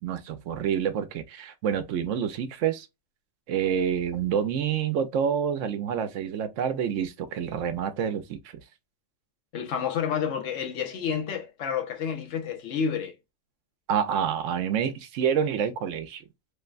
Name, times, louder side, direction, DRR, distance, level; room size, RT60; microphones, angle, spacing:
voice 1, 0.0-2.9 3.5-8.4 13.9-16.2, right 8 dB, 75° right, 0.9 m, -27 dB
voice 2, 9.5-13.1, left 7 dB, 65° left, 1.0 m, -29 dB
3.2 x 2.1 x 2.3 m
omnidirectional pair, 1.4 m